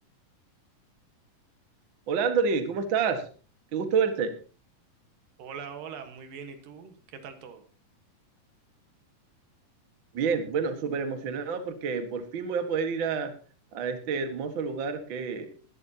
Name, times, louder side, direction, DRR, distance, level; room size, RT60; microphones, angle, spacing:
voice 1, 2.1-3.3 3.7-4.3 10.1-13.3 13.7-15.5, right 6 dB, 45° right, 7 dB, 1.8 m, -28 dB
voice 2, 5.4-7.7, right 6 dB, 80° right, 7 dB, 3.1 m, -42 dB
21.0 x 11.0 x 2.9 m, 0.37 s
omnidirectional pair, 3.9 m